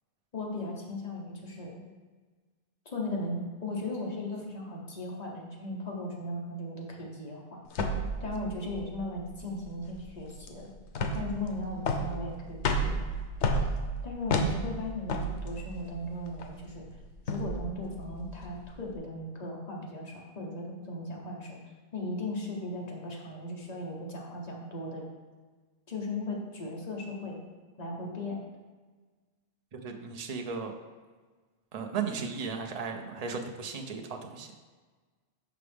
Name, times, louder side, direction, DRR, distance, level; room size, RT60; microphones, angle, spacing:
voice 1, 0.3-1.8 2.9-7.6 8.2-10.7 11.1-13.0 14.0-16.8 17.3-21.6 21.9-25.1 25.9-27.4 27.8-28.4, left 1 dB, 40° left, -2 dB, 1.1 m, -37 dB
sound 1, 7.7-18.9, equal, 90° left, 0.9 m, -33 dB
voice 2, 29.7-30.7 31.7-34.5, right 5 dB, 45° right, 3 dB, 0.6 m, -35 dB
5.8 x 5.0 x 3.4 m, 1.4 s
omnidirectional pair, 1.1 m